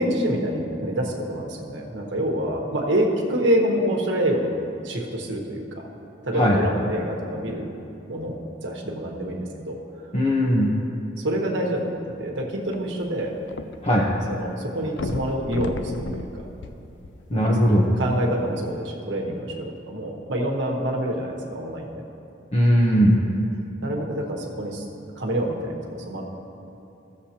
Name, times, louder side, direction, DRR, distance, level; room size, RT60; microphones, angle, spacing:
voice 1, 0.0-4.5 4.8-5.9 6.2-7.6 8.1-8.3 8.6-9.8 11.2-13.4 14.3-16.4 17.3-22.0 23.8-24.9 25.2-26.2, right 1 dB, 80° right, -1 dB, 1.1 m, -27 dB
voice 2, 10.1-10.7 13.8-14.1 17.3-17.9 22.5-23.2, equal, 35° left, -4 dB, 0.8 m, -18 dB
sound 1, 12.7-14.1 14.4-14.5 14.9-17.5 18.2-18.3, left 2 dB, 80° left, 0.5 m, -33 dB
15.0 x 6.9 x 2.9 m, 2.8 s
head